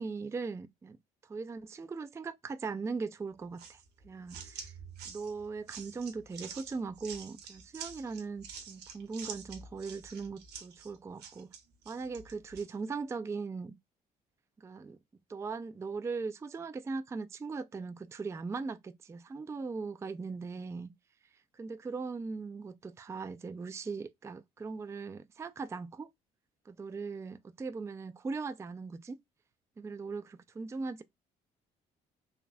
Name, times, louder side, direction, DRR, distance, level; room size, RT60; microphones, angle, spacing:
voice 1, 0.0-1.0 1.2-4.7 5.1-11.5 11.9-13.8 14.6-15.0 15.3-20.9 21.5-26.1 26.7-29.2 29.8-31.0, right 4 dB, 15° right, 0.3 m, -39 dB
sound 1, 3.6-12.7, right 6 dB, 60° right, 0.9 m, -47 dB
3.3 x 2.2 x 2.5 m
hypercardioid pair, 55°, 19 cm